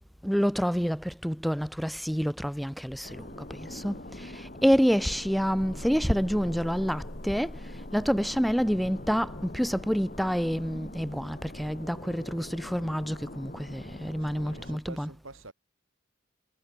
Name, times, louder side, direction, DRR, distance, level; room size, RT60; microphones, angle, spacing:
voice 1, 0.2-7.6 7.9-15.1, equal, ahead, 0.6 m, -28 dB
sound 1, 3.0-14.8, left 1 dB, 40° left, 2.5 m, -42 dB
voice 2, 14.3-15.5, right 2 dB, 75° right, 6.8 m, -47 dB
head